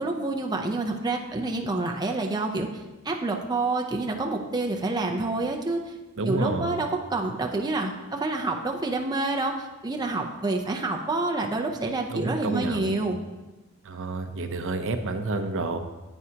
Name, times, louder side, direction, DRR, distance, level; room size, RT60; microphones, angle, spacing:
voice 1, 0.0-2.7 3.0-5.8 6.2-13.2, right 2 dB, 20° right, 1 dB, 0.6 m, -28 dB
voice 2, 6.2-6.9 12.1-13.0 13.8-15.8, right 2 dB, 60° right, 7 dB, 0.7 m, -29 dB
9.4 x 8.9 x 2.9 m, 1.1 s
head